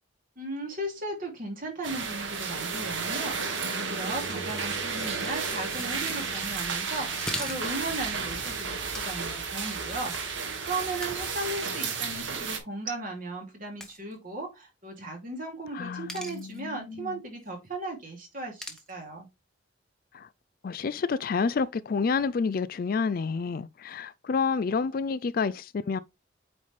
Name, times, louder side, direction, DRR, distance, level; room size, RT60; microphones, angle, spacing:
voice 1, 0.4-19.3, right 2 dB, 45° right, 2.7 m, -36 dB
sound 1, 1.8-12.6, right 5 dB, 75° right, 1.7 m, -32 dB
sound 2, 3.9-7.9 8.9-9.4 9.9-10.3 11.0-11.8 12.3-12.5 13.8-14.1 16.1-16.6 18.6-18.9, left 1 dB, 5° left, 1.1 m, -42 dB
voice 2, 15.7-17.2 20.1-20.3 20.6-26.0, left 5 dB, 45° left, 0.4 m, -29 dB
8.6 x 4.0 x 3.2 m
head